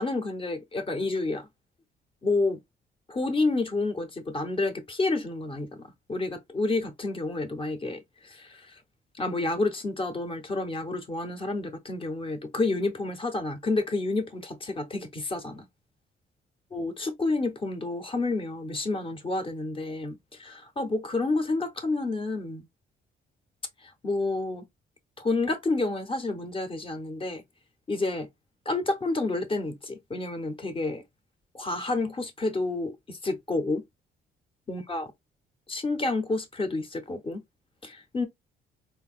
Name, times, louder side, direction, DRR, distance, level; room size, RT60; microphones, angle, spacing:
voice 1, 0.0-1.5 2.2-2.6 3.1-8.8 9.1-15.7 16.7-22.7 23.8-24.6 25.2-27.4 27.9-28.3 28.7-31.0 31.5-33.8 34.7-35.1 35.7-37.4 37.8-38.3, left 2 dB, 25° left, 0.6 m, -29 dB
3.4 x 2.2 x 2.3 m
cardioid pair, 90°, 20 cm